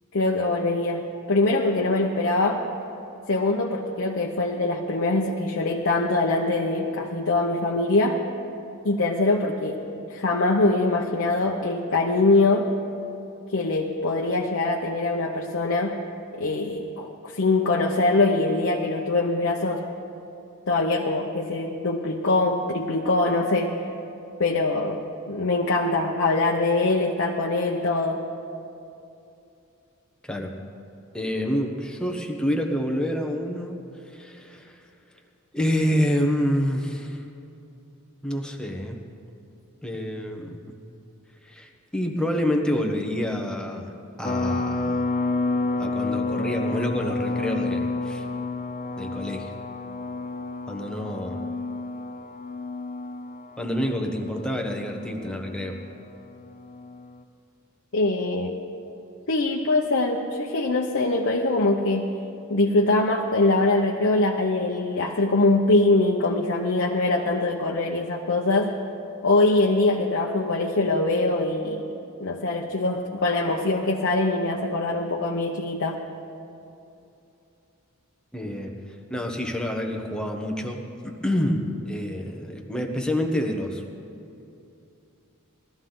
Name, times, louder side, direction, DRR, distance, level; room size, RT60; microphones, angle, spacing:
voice 1, 0.1-1.0 1.3-2.6 3.3-8.2 8.8-9.8 10.1-12.7 13.5-16.0 16.3-19.8 20.7-23.8 24.4-25.0 25.3-28.2 57.9-58.5 59.3-62.1 62.5-68.8 69.2-71.9 72.2-76.0, left 2 dB, 60° left, 0 dB, 0.9 m, -23 dB
voice 2, 31.1-34.8 35.5-37.2 38.2-39.0 39.8-40.6 41.4-43.9 44.2-45.1 45.8-48.2 49.0-49.5 50.7-51.4 53.6-55.8 78.3-78.8 79.1-80.8 81.0-83.8, equal, 5° left, 1 dB, 1.1 m, -27 dB
sound 1, 44.2-57.2, left 3 dB, 35° left, 0.5 m, -30 dB
19.0 x 13.5 x 3.9 m, 2.7 s
head